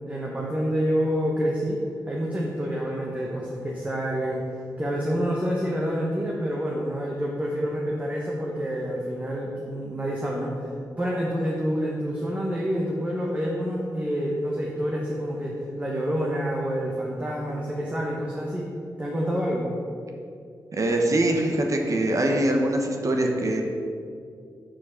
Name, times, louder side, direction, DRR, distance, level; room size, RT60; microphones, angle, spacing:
voice 1, 0.1-4.5 4.8-10.5 11.0-18.7 19.0-19.7, equal, 20° right, -3 dB, 1.1 m, -28 dB
voice 2, 20.7-23.6, right 1 dB, 50° right, 2 dB, 1.1 m, -23 dB
6.2 x 4.7 x 6.4 m, 2.4 s
cardioid pair, 65°, 7 cm